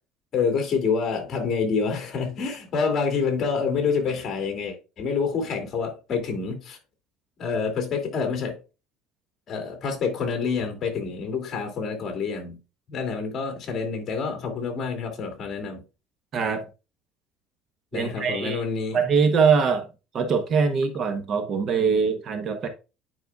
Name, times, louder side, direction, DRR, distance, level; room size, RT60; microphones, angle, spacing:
voice 1, 0.3-6.8 7.4-8.6 9.5-12.6 12.9-15.8 17.9-19.0, left 5 dB, 35° left, 2.5 m, -27 dB
voice 2, 16.3-16.6 17.9-18.6 18.9-19.9 20.1-22.7, right 5 dB, 40° right, 1.0 m, -22 dB
9.5 x 5.5 x 2.4 m
cardioid pair, 145°, 0 cm